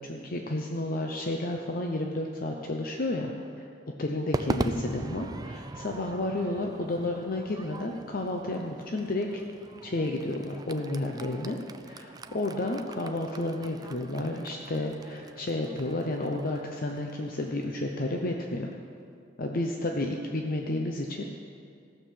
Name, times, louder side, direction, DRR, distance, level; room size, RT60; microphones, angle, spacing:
voice 1, 0.0-3.3 3.6-3.7 4.0-9.4 9.8-11.6 11.8-18.7 19.4-21.2, left 1 dB, 50° left, 2 dB, 0.7 m, -31 dB
Crowd / Fireworks, 4.3-18.7, right 2 dB, 20° right, 0.4 m, -40 dB
15.0 x 6.6 x 7.5 m, 2.4 s
head